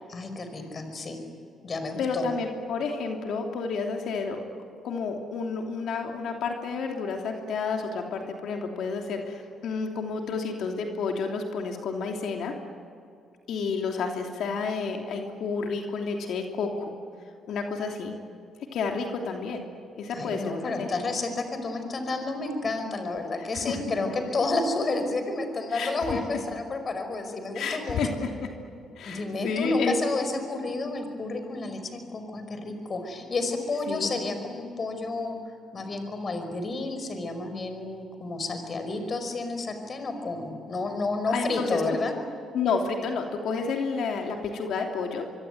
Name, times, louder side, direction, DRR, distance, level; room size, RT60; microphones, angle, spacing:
voice 1, 0.1-1.2 1.6-2.3 20.1-28.0 29.1-35.4 35.7-42.2, left 3 dB, 40° left, 7 dB, 5.4 m, -30 dB
voice 2, 2.0-4.4 4.8-12.5 13.5-17.0 17.5-18.1 18.7-19.6 20.0-21.0 23.5-23.8 25.7-26.2 27.5-28.5 29.0-29.9 33.9-34.2 41.3-41.8 42.5-45.2, left 4 dB, 75° left, 2 dB, 3.0 m, -30 dB
25.0 x 24.5 x 9.5 m, 2.4 s
cardioid pair, 90°, 0 cm